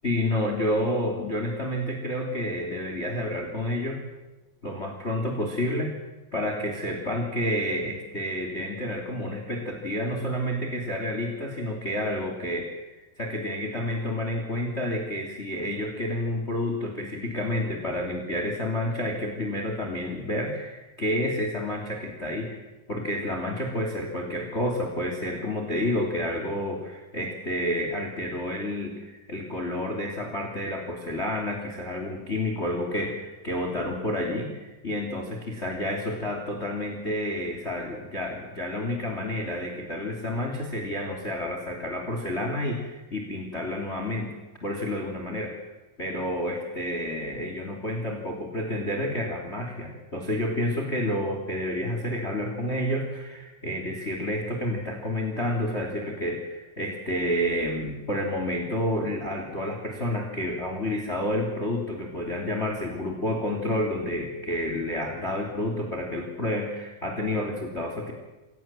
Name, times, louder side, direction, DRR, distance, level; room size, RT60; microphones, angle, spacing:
voice 1, 0.0-4.0 4.6-5.9 6.3-22.6 22.9-45.5 46.0-68.1, left 1 dB, 20° left, 3 dB, 3.0 m, -29 dB
27.0 x 18.5 x 7.6 m, 1.1 s
omnidirectional pair, 4.1 m